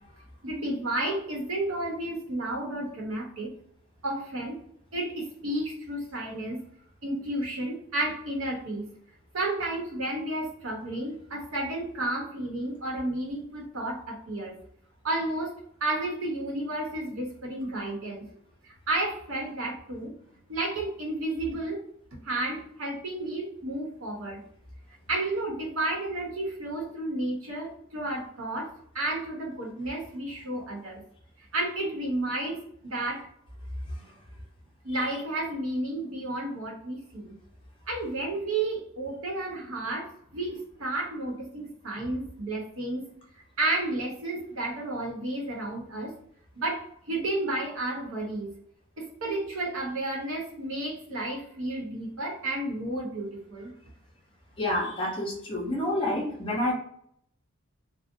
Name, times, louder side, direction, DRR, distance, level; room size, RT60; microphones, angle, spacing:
voice 1, 0.4-3.5 4.0-4.6 4.9-6.6 7.0-8.9 9.3-14.6 15.0-15.5 15.8-18.3 18.6-20.1 20.5-21.8 22.2-24.4 25.1-31.0 31.5-33.3 34.8-37.3 37.9-43.1 43.6-46.1 46.6-48.5 49.0-53.7, right 2 dB, 85° right, -1 dB, 0.9 m, -32 dB
voice 2, 54.6-56.7, left 1 dB, 25° left, -3 dB, 0.8 m, -28 dB
2.6 x 2.1 x 2.6 m, 0.68 s
head